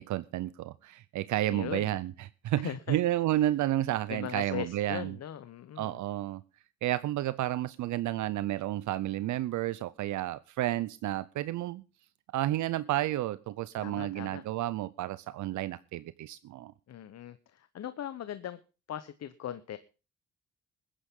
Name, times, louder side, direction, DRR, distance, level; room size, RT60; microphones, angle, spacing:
voice 1, 0.0-2.1 2.4-5.2 5.8-6.4 6.8-11.8 12.3-16.7, right 14 dB, 75° right, 16 dB, 0.6 m, -31 dB
voice 2, 1.4-2.0 2.5-3.0 4.1-6.0 13.8-14.4 16.9-18.6 18.9-19.8, left 10 dB, 60° left, 12 dB, 0.9 m, -39 dB
20.0 x 10.0 x 3.7 m, 0.33 s
cardioid pair, 90°, 30 cm